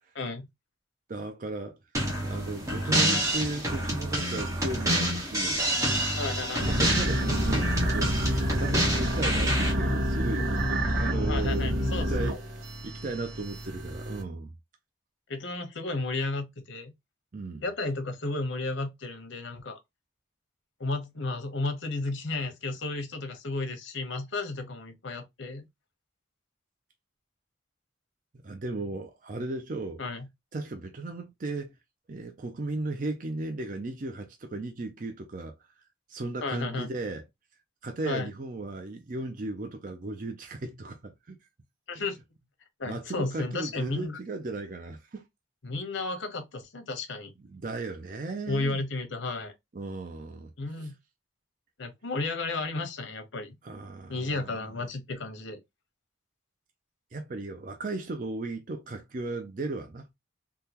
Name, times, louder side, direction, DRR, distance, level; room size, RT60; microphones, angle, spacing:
voice 1, 0.1-0.5 6.2-6.7 11.3-12.1 15.3-16.9 17.6-19.8 20.8-25.6 30.0-30.3 36.4-36.9 38.1-38.3 41.9-42.2 42.8-44.2 45.6-47.3 48.5-49.5 50.6-50.9 51.8-53.5 54.1-55.6, left 3 dB, 80° left, 0.9 m, -33 dB
voice 2, 1.1-1.8 2.2-6.0 6.6-7.7 7.9-12.4 12.8-14.5 17.3-17.6 28.4-30.0 30.5-31.8 32.1-35.5 36.1-37.2 37.8-41.4 41.9-42.0 42.8-45.2 47.5-48.8 49.7-50.5 50.8-50.9 53.6-54.6 57.1-60.1, right 2 dB, 45° right, 0.5 m, -36 dB
sound 1, 1.9-9.7, right 1 dB, 15° right, 1.1 m, -28 dB
sound 2, 6.6-14.2, equal, 85° right, 1.3 m, -28 dB
3.6 x 2.3 x 2.8 m
head